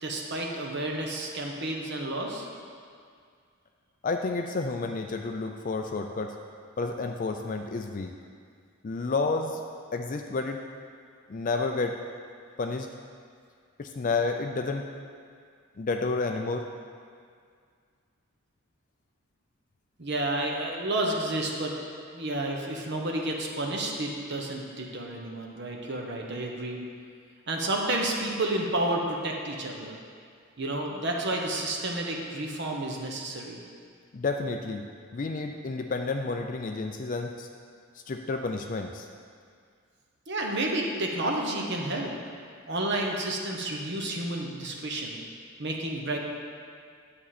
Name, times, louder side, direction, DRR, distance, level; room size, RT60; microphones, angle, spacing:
voice 1, 0.0-2.5 20.0-21.7 22.1-26.8 27.5-30.0 30.6-33.6 40.3-42.1 42.7-45.2 45.6-46.2, right 1 dB, 55° right, 0 dB, 1.1 m, -30 dB
voice 2, 4.0-6.3 6.8-8.1 8.8-9.6 9.9-10.6 11.3-12.0 12.6-12.9 13.8-14.9 15.8-16.7 34.1-34.8 35.1-37.5 38.1-39.1, left 3 dB, 40° left, 4 dB, 0.4 m, -30 dB
10.0 x 7.7 x 4.2 m, 2.1 s
head